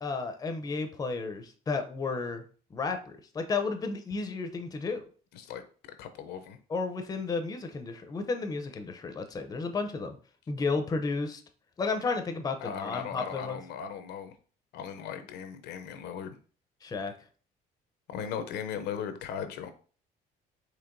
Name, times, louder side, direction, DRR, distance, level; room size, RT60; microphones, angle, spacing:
voice 1, 0.0-2.4 2.7-5.1 6.7-10.2 10.5-11.4 11.8-13.6 16.8-17.1, left 4 dB, 20° left, 7 dB, 0.5 m, -32 dB
voice 2, 6.0-6.6 12.6-14.4 14.7-16.4 18.1-19.7, left 8 dB, 80° left, 9 dB, 0.5 m, -37 dB
4.6 x 3.0 x 2.5 m, 0.40 s
cardioid pair, 110°, 17 cm